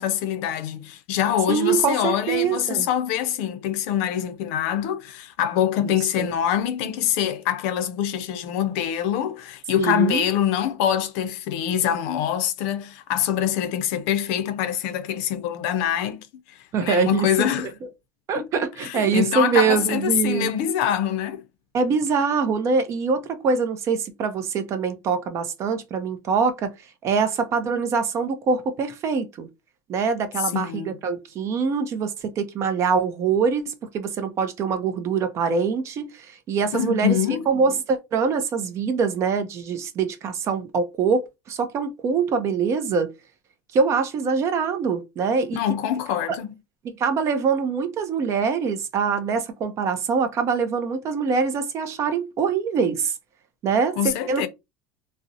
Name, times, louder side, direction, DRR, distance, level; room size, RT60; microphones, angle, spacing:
voice 1, 0.0-17.7 18.3-18.5 18.8-21.4 30.5-30.9 36.7-37.5 45.5-46.5 54.0-54.5, left 10 dB, 70° left, 0.4 m, -24 dB
voice 2, 1.5-2.9 5.8-6.3 9.8-10.2 16.7-17.5 18.3-20.5 21.7-26.7 27.0-29.5 29.9-37.2 37.5-43.1 43.7-45.6 47.0-53.1 53.6-54.0 54.3-54.5, right 5 dB, 40° right, 0.4 m, -24 dB
2.4 x 2.0 x 2.6 m
supercardioid pair, 120°, 7 cm